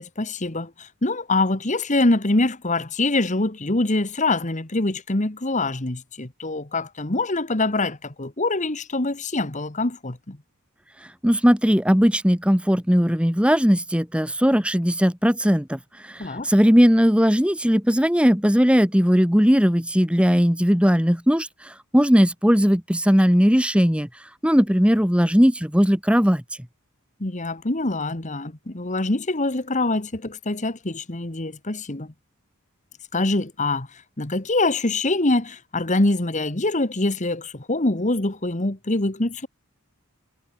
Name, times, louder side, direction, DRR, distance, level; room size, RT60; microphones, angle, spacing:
voice 1, 0.0-10.4 16.2-16.5 27.2-32.1 33.1-39.5, left 2 dB, 35° left, 1.5 m, -24 dB
voice 2, 11.2-24.1 24.4-26.4, equal, 5° right, 2.0 m, -18 dB
head